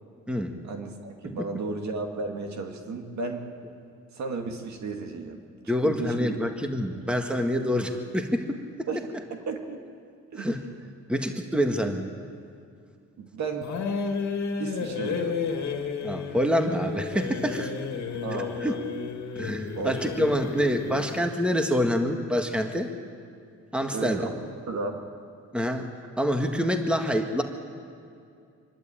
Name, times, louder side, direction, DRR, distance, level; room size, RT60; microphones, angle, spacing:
voice 1, 0.6-3.5 4.1-5.4 5.8-6.4 8.9-9.8 10.3-10.5 13.2-13.7 14.6-15.4 18.2-18.8 19.8-20.0 23.9-24.3 24.7-25.0, right 4 dB, 65° right, 4 dB, 2.3 m, -34 dB
voice 2, 5.7-8.9 10.4-10.6 11.1-12.1 16.0-17.7 18.6-18.7 19.4-22.9 23.7-24.3 25.5-25.9 26.2-27.4, equal, 5° right, 5 dB, 1.7 m, -26 dB
sound 1, 13.6-21.3, left 5 dB, 65° left, 2.1 m, -32 dB
25.0 x 12.0 x 8.7 m, 2.4 s
cardioid pair, 90°, 30 cm